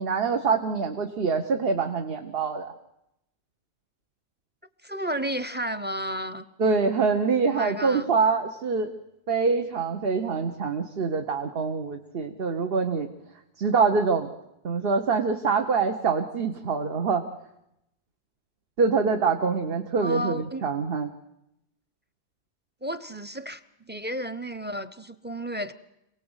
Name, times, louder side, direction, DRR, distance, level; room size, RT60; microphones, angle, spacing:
voice 1, 0.0-2.7 6.6-8.9 9.3-13.1 13.6-14.3 14.6-17.2 18.8-21.1, right 5 dB, 60° right, 5 dB, 1.3 m, -25 dB
voice 2, 4.8-6.4 7.4-8.1 20.0-20.7 22.8-25.7, equal, 10° right, 14 dB, 0.7 m, -32 dB
27.0 x 18.0 x 8.1 m, 0.84 s
omnidirectional pair, 1.1 m